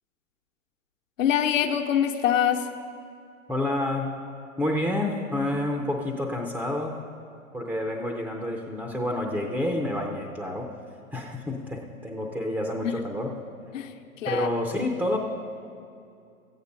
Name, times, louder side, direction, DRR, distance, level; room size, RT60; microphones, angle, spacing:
voice 1, 1.2-2.7 12.8-13.0 13.7-14.5, left 9 dB, 60° left, 5 dB, 1.0 m, -25 dB
voice 2, 3.5-4.2 4.6-7.0 7.5-10.7 11.1-13.3 14.3-15.2, left 1 dB, ahead, 1 dB, 0.6 m, -29 dB
14.5 x 8.7 x 5.3 m, 2.5 s
hypercardioid pair, 120°, 42 cm